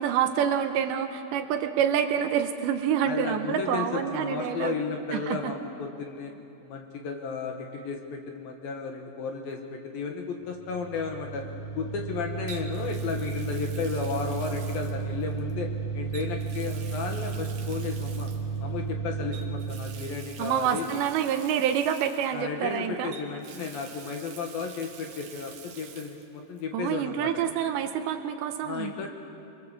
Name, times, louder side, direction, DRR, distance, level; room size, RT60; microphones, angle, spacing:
voice 1, 0.0-4.8 5.1-5.5 20.4-23.1 26.7-28.9, right 9 dB, 75° right, 7 dB, 3.0 m, -27 dB
voice 2, 3.0-6.3 6.6-11.4 11.7-18.3 18.6-20.9 22.3-27.3 28.6-29.1, left 5 dB, 60° left, 3 dB, 2.8 m, -34 dB
Water tap faucet, 9.5-9.7 12.5-15.5 16.1-18.6 19.3-22.7 23.1-26.3 26.6-26.7 28.2-28.3, right 7 dB, 60° right, 2.4 m, -47 dB
sound 1, 10.4-20.3, right 5 dB, ahead, 5.4 m, -33 dB
25.0 x 23.5 x 7.5 m, 2.7 s
omnidirectional pair, 5.4 m